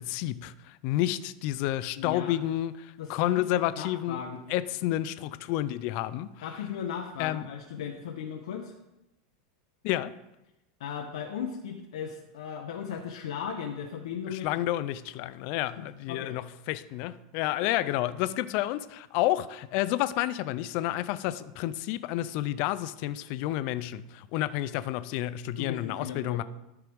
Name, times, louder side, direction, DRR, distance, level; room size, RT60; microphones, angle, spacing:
voice 1, 0.0-4.2 4.5-6.3 7.2-7.5 9.8-10.1 14.3-26.4, left 14 dB, 50° left, 0.4 m, -30 dB
voice 2, 2.0-2.4 3.0-3.4 3.8-4.4 6.4-8.7 10.8-14.5 15.8-16.4 17.5-17.7 25.6-26.4, left 7 dB, 85° left, 0.8 m, -37 dB
13.0 x 4.7 x 3.5 m
supercardioid pair, 150°, 3 cm